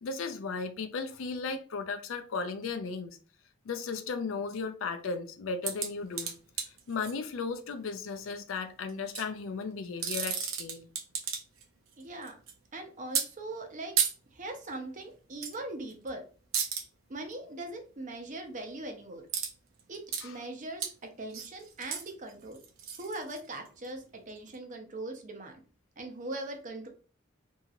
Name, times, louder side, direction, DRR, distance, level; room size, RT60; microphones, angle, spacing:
voice 1, 0.0-3.2 3.6-6.3 6.9-10.9 20.2-20.4, left 4 dB, 80° left, 0.4 m, -35 dB
sound 1, 5.6-7.1 8.9-9.2 9.8-11.6 11.9-12.5 13.1-13.3 14.0-14.1 15.4-15.6 15.9-16.1 16.5-16.8 19.3-19.5 19.8-20.2 20.8-20.9 21.3-23.9 24.5-24.6, right 7 dB, 85° right, 0.6 m, -33 dB
voice 2, 12.0-12.3 12.7-14.0 14.3-16.2 17.1-19.2 19.9-22.6 23.0-25.6 26.0-26.9, right 2 dB, 40° right, 0.6 m, -40 dB
2.8 x 2.8 x 2.4 m
head